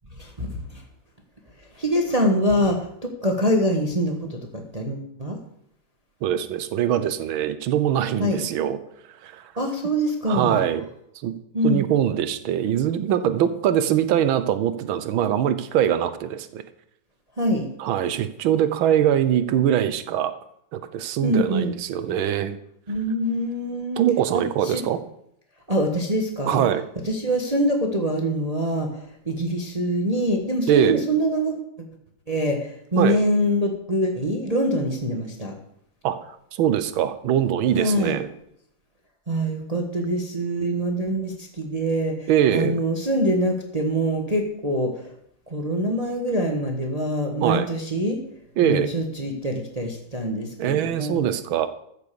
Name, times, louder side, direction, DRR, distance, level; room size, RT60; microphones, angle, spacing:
voice 1, 0.2-0.8 1.7-5.4 8.2-8.4 9.6-10.6 11.5-11.9 17.4-17.7 21.2-21.7 22.9-24.0 24.3-24.8 25.7-26.6 27.0-31.9 32.3-35.5 37.7-38.2 39.3-45.1 45.5-48.2 48.6-51.2, equal, 20° right, 2 dB, 1.4 m, -24 dB
voice 2, 6.2-8.8 9.0-9.5 10.3-10.8 11.2-11.3 11.6-16.6 17.8-20.3 20.7-22.6 24.0-25.0 26.4-26.9 30.7-31.0 33.0-33.2 36.0-38.3 42.3-42.8 47.4-47.7 48.6-48.9 50.6-51.7, right 10 dB, 85° right, 12 dB, 1.7 m, -22 dB
14.5 x 6.7 x 6.9 m, 0.74 s
omnidirectional pair, 2.2 m